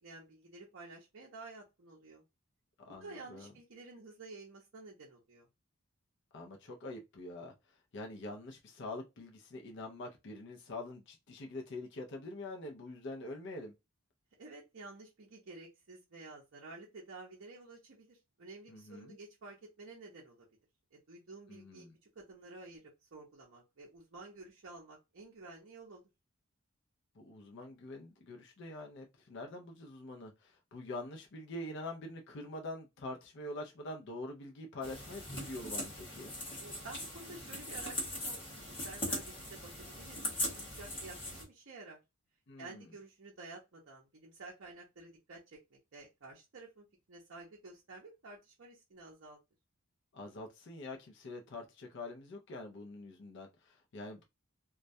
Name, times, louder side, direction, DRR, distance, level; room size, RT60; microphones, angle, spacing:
voice 1, 0.0-2.2 3.0-5.5 14.4-20.5 20.9-21.9 22.1-26.1 36.6-42.0 42.6-49.4, right 3 dB, 55° right, 0.6 m, -51 dB
voice 2, 2.8-3.5 6.3-7.5 7.9-13.7 18.7-19.2 21.5-21.9 27.2-36.3 42.5-42.9 50.1-54.3, left 2 dB, 55° left, 0.4 m, -45 dB
sound 1, 34.8-41.4, left 1 dB, 25° left, 1.0 m, -40 dB
2.2 x 2.1 x 2.6 m
head